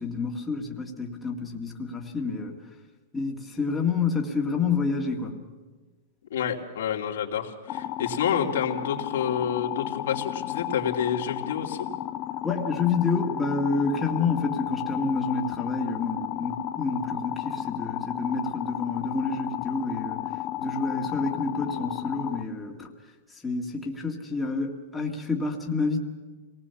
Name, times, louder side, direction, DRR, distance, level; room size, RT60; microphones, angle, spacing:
voice 1, 0.0-2.5 3.1-5.4 12.4-20.2 20.6-22.9 23.4-26.0, left 4 dB, 10° left, -1 dB, 2.2 m, -28 dB
voice 2, 6.3-11.9, left 8 dB, 80° left, 1 dB, 2.8 m, -28 dB
sound 1, 7.7-22.4, left 13 dB, 30° left, 0.7 m, -33 dB
26.0 x 19.0 x 7.1 m, 1.3 s
supercardioid pair, 150°, 0 cm